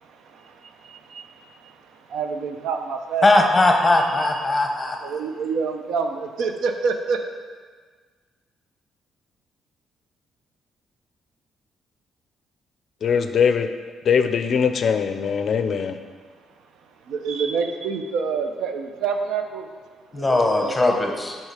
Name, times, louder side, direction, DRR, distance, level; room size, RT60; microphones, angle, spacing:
voice 1, 0.0-3.3 4.0-4.5 5.0-7.2 16.8-19.7 20.1-20.7, right 5 dB, 80° right, 6 dB, 0.6 m, -28 dB
voice 2, 3.2-5.0 20.1-21.4, left 2 dB, 20° left, 3 dB, 0.9 m, -19 dB
voice 3, 13.0-13.7 14.1-16.0, left 6 dB, 55° left, 8 dB, 0.4 m, -21 dB
6.4 x 4.3 x 4.9 m, 1.5 s
cardioid pair, 90°, 0 cm